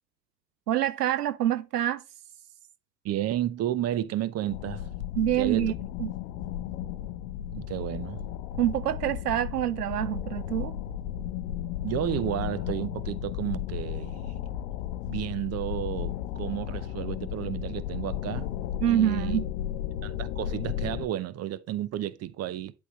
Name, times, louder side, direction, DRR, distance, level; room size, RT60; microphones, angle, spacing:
voice 1, 0.7-2.0 5.2-5.7 6.0-6.1 8.6-10.7 18.8-19.5, right 12 dB, 75° right, 0.7 m, -26 dB
voice 2, 3.0-4.8 5.4-5.7 7.5-8.2 11.8-14.4 15.1-18.5 18.9-19.4 20.0-22.7, right 12 dB, 35° right, 0.7 m, -32 dB
sound 1, 4.5-21.1, left 11 dB, 55° left, 0.9 m, -34 dB
11.0 x 3.8 x 3.9 m
figure-of-eight pair, 70°, 47 cm